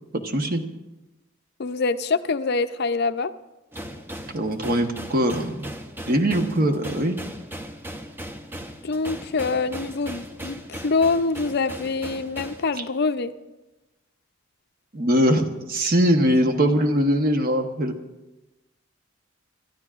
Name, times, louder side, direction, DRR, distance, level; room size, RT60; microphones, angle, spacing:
voice 1, 0.1-0.6 4.3-5.7 6.1-7.2 14.9-17.9, equal, 45° right, 5 dB, 1.1 m, -21 dB
voice 2, 1.6-3.3 8.8-13.3, left 4 dB, 55° left, 11 dB, 0.5 m, -25 dB
sound 1, 3.7-12.6, equal, 10° right, 0.7 m, -38 dB
28.0 x 13.0 x 2.5 m, 1.0 s
head